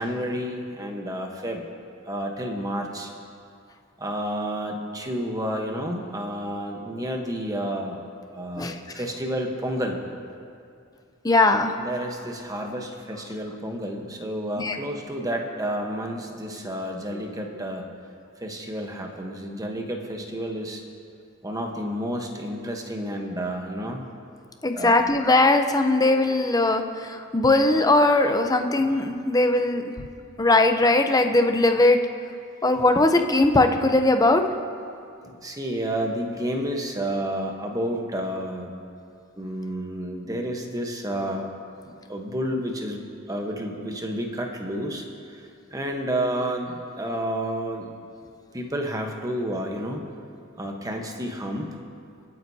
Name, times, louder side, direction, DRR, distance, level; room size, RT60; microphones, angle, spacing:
voice 1, 0.0-1.6 2.1-3.1 4.0-8.0 8.3-10.0 11.8-17.8 18.4-20.8 21.4-24.0 24.7-25.0 34.9-38.7 39.4-41.5 41.8-47.9 48.5-50.0 50.6-51.8, equal, 15° right, 2 dB, 1.1 m, -30 dB
voice 2, 11.2-11.7 14.6-14.8 24.6-29.9 30.4-32.0 32.6-34.5, left 2 dB, 20° left, 6 dB, 0.6 m, -20 dB
27.0 x 9.2 x 2.8 m, 2.4 s
head